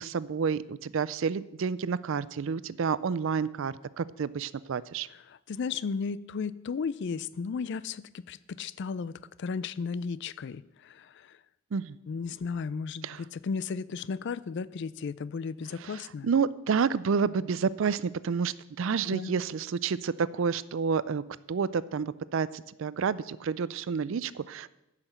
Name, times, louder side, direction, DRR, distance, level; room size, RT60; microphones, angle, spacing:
voice 1, 0.0-5.1 11.7-12.0 13.0-13.2 16.2-24.7, right 6 dB, 60° right, 18 dB, 0.4 m, -29 dB
voice 2, 5.1-11.4 12.1-16.3 19.1-19.4, left 5 dB, 50° left, 18 dB, 0.3 m, -35 dB
10.5 x 5.8 x 7.9 m, 0.92 s
head